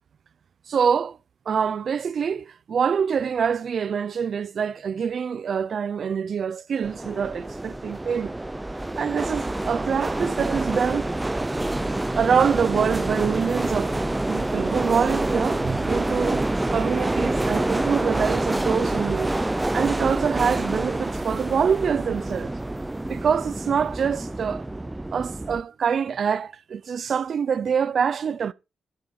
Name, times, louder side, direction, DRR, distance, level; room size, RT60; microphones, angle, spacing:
voice 1, 0.7-1.2 1.5-8.3 9.0-11.1 12.1-14.0 14.3-19.3 19.7-22.5 23.1-24.7 25.1-28.5, right 7 dB, 60° right, 0.7 m, -25 dB
sound 1, 6.8-25.6, right 1 dB, 15° right, 0.7 m, -27 dB
13.0 x 6.9 x 5.5 m
cardioid pair, 85°, 0 cm